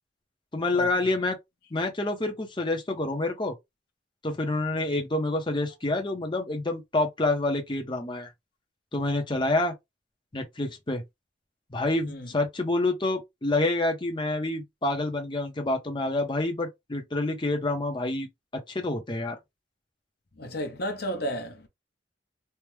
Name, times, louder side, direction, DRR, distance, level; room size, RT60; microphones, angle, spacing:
voice 1, 0.5-1.4 1.7-3.5 4.2-8.3 8.9-9.7 10.3-11.0 11.7-18.3 18.7-19.4, left 2 dB, 25° left, 0.7 m, -27 dB
voice 2, 20.4-21.7, equal, 55° left, 0.8 m, -32 dB
3.4 x 2.1 x 3.0 m
head